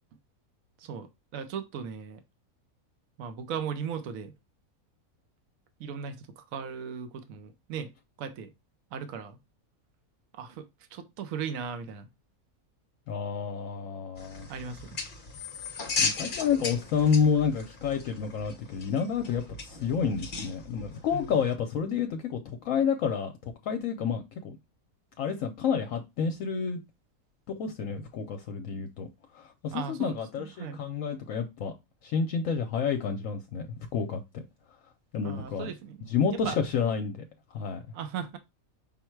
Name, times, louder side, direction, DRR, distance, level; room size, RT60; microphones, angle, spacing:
voice 1, 1.3-2.2 3.2-4.3 5.8-7.9 8.2-8.5 8.9-9.4 10.4-10.6 10.9-12.1 14.5-15.0 21.1-21.3 29.7-30.8 35.2-36.1 36.4-36.6 37.9-38.4, right 7 dB, 70° right, 1.1 m, -37 dB
voice 2, 13.1-14.5 16.0-24.5 25.2-26.8 27.6-29.1 29.3-31.7 32.0-33.7 33.9-34.4 35.1-35.7 36.1-37.2 37.5-37.8, left 6 dB, 70° left, 0.9 m, -29 dB
sound 1, 14.2-21.5, left 4 dB, 45° left, 0.8 m, -36 dB
5.5 x 2.1 x 4.5 m
omnidirectional pair, 1.5 m